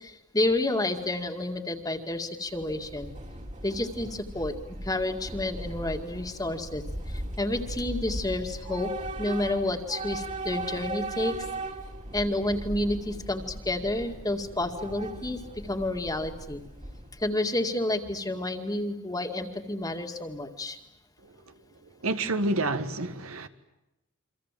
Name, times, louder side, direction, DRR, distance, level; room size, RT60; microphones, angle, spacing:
voice 1, 0.0-3.1 3.6-4.5 4.8-6.8 7.4-8.9 9.2-11.5 12.1-15.4 15.7-16.6 17.2-20.8, left 1 dB, 15° left, 5 dB, 2.2 m, -30 dB
Train / Subway metro underground, 2.5-17.3, right 1 dB, 35° right, 2.8 m, -38 dB
voice 2, 22.0-23.5, right 2 dB, 80° right, 9 dB, 1.8 m, -28 dB
28.5 x 25.0 x 7.6 m, 0.91 s
head